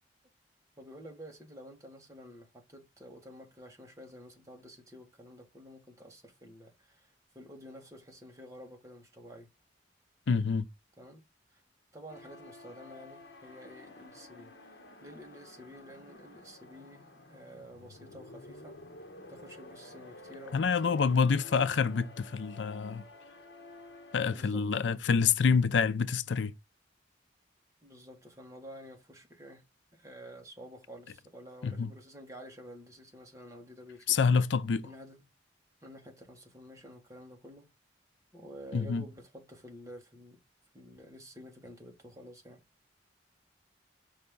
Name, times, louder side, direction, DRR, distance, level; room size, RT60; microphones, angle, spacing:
voice 1, 0.8-9.5 11.0-11.2 11.5-11.6 11.9-18.8 19.3-21.1 24.3-24.6 27.8-29.6 29.9-34.2 34.8-35.2 35.8-37.7 38.3-40.4 40.7-42.6, equal, 20° right, 1.6 m, -50 dB
voice 2, 10.3-10.7 20.5-23.0 24.1-26.5 31.6-31.9 34.1-34.9 38.7-39.0, left 5 dB, 90° left, 0.5 m, -27 dB
sound 1, 12.1-24.4, left 2 dB, 70° left, 1.2 m, -52 dB
5.5 x 3.5 x 5.3 m
head